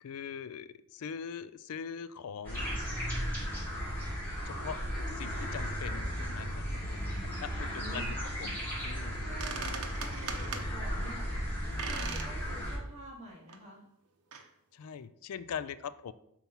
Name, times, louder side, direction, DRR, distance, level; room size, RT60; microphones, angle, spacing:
voice 1, 0.0-2.7 4.4-4.8 5.2-7.0 7.4-9.2 14.7-16.1, left 7 dB, 80° left, 15 dB, 0.4 m, -42 dB
sound 1, 2.4-12.8, equal, 10° left, 2.9 m, -35 dB
voice 2, 6.7-8.1 9.1-11.3 11.6-13.8, equal, 30° right, -5 dB, 2.5 m, -49 dB
sound 2, 9.1-9.2 9.4-10.7 11.8-12.3 12.7-12.8 13.5-13.6 14.3-14.5, right 5 dB, 85° right, 0.8 m, -39 dB
5.9 x 4.3 x 5.4 m, 0.76 s
head